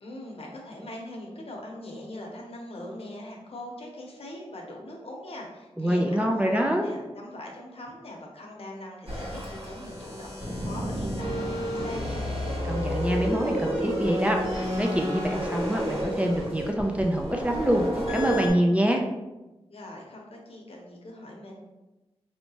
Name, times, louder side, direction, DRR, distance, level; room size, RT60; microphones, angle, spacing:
voice 1, 0.0-12.3 19.7-21.6, left 1 dB, 65° left, -1 dB, 0.9 m, -41 dB
voice 2, 5.8-6.9 12.7-19.0, equal, 10° right, 1 dB, 0.4 m, -25 dB
sound 1, 9.1-18.5, equal, 65° right, 1.5 m, -30 dB
4.4 x 2.9 x 2.8 m, 1.0 s
wide cardioid pair, 110°, 11 cm